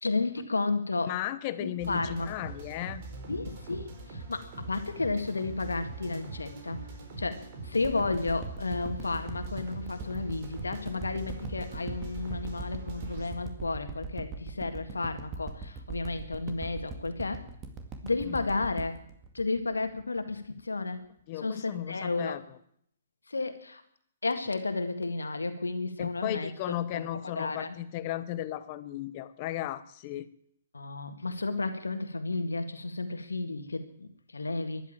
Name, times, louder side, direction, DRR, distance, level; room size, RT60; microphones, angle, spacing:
voice 1, 0.0-1.1 1.6-2.3 3.3-6.8 7.2-17.5 18.0-18.9 19.3-21.0 21.4-22.4 23.3-23.8 24.2-26.5 26.9-27.8 30.7-34.8, left 3 dB, 80° left, 8 dB, 1.8 m, -32 dB
voice 2, 1.0-3.0 18.2-18.4 21.3-22.4 26.0-30.3, left 13 dB, 40° left, 14 dB, 0.9 m, -35 dB
sound 1, 1.8-13.3, right 2 dB, 45° right, 4.5 m, -43 dB
sound 2, 7.8-20.2 20.6-20.7, right 4 dB, 25° right, 2.2 m, -40 dB
13.5 x 11.5 x 8.7 m, 0.68 s
figure-of-eight pair, 125°, 0 cm